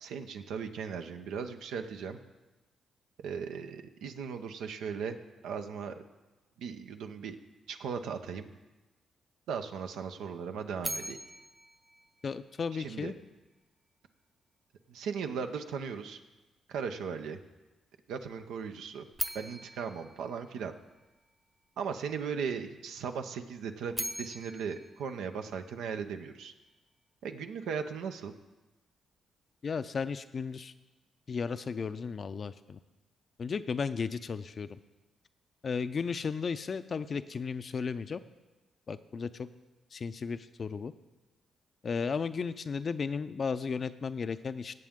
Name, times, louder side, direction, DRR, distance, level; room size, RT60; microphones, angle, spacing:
voice 1, 0.0-2.2 3.2-5.2 5.4-5.9 6.6-7.4 7.7-8.5 9.5-11.2 12.7-13.1 14.9-16.2 16.7-17.4 18.1-19.0 19.3-20.7 21.8-26.5 27.2-28.3, right 6 dB, 80° right, 7 dB, 0.7 m, -37 dB
sound 1, 10.8-12.9 19.1-21.3 23.7-26.1, right 1 dB, 15° right, 0.6 m, -41 dB
voice 2, 12.2-13.1 29.6-30.7 31.3-32.8 33.4-34.7 35.6-38.2 38.9-39.5 39.9-40.9 41.8-44.7, left 5 dB, 50° left, 12 dB, 0.5 m, -34 dB
17.5 x 7.6 x 3.7 m, 1.1 s
supercardioid pair, 55°, 0 cm